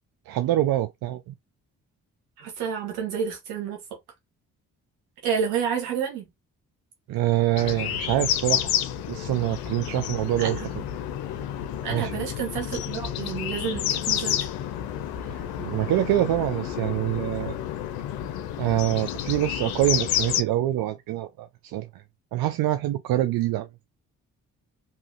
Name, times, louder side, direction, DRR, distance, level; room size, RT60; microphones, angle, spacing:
voice 1, 0.3-1.3 7.1-8.7 9.1-10.8 11.9-12.1 15.3-17.5 18.6-22.0 22.3-23.7, right 14 dB, 65° right, 0.5 m, -25 dB
voice 2, 2.4-3.8 5.2-6.2 10.4-10.7 11.8-14.4, right 7 dB, 85° right, 1.1 m, -29 dB
sound 1, 7.6-20.4, left 11 dB, 75° left, 0.5 m, -30 dB
2.8 x 2.4 x 2.5 m
hypercardioid pair, 45°, 37 cm